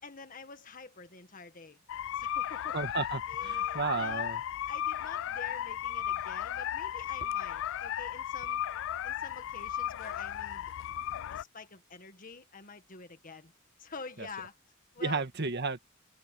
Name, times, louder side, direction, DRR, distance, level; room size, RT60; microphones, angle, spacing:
voice 1, 0.0-1.8 2.1-2.8 3.3-4.3 4.7-8.6 9.0-10.7 11.3-13.5 13.8-14.6 14.9-15.2, left 4 dB, 40° left, 1.7 m, -47 dB
sound 1, 1.9-11.4, left 11 dB, 65° left, 0.3 m, -35 dB
voice 2, 2.7-4.4 15.0-15.8, right 4 dB, 55° right, 1.9 m, -32 dB
head